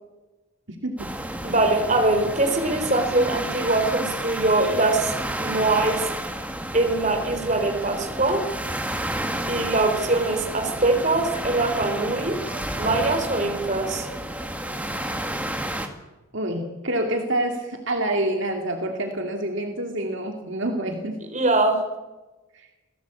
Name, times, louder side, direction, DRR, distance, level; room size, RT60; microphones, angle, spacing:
voice 1, 0.7-1.1 16.3-21.2 22.5-22.7, right 1 dB, 60° right, 3 dB, 2.8 m, -27 dB
sound 1, 1.0-15.9, right 1 dB, 5° right, 2.2 m, -31 dB
voice 2, 1.4-5.1 5.4-6.1 6.7-8.5 9.5-12.4 12.8-14.1 21.3-21.8, right 2 dB, 35° right, 5 dB, 4.1 m, -22 dB
sound 2, 10.2-10.4 10.7-11.1 11.3-15.4, equal, 20° left, 4.0 m, -43 dB
29.0 x 18.0 x 8.6 m, 1.1 s
head